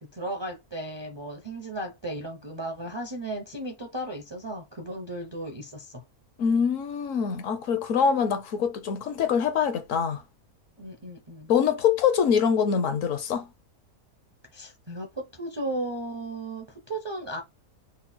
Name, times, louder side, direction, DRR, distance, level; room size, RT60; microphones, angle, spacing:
voice 1, 0.0-6.0 10.8-11.5 14.5-17.4, right 1 dB, 35° right, 0.4 m, -35 dB
voice 2, 6.4-10.2 11.5-13.5, left 7 dB, 65° left, 1.0 m, -24 dB
3.8 x 2.1 x 4.2 m
omnidirectional pair, 1.6 m